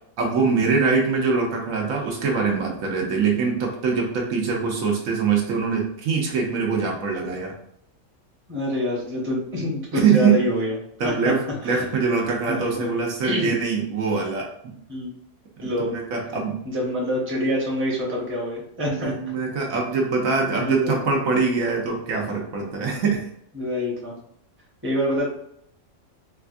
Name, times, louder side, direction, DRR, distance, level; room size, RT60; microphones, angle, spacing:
voice 1, 0.2-7.5 9.9-10.4 11.0-14.7 15.6-16.6 18.9-23.3, right 5 dB, 70° right, 0 dB, 1.1 m, -23 dB
voice 2, 8.5-10.7 11.0-11.3 11.6-11.8 12.5-12.9 13.2-13.6 14.9-15.1 15.6-15.9 16.6-19.1 20.5-20.9 23.5-24.2 24.8-25.3, left 1 dB, 10° right, -4 dB, 0.8 m, -26 dB
4.3 x 2.3 x 2.4 m, 0.72 s
omnidirectional pair, 1.5 m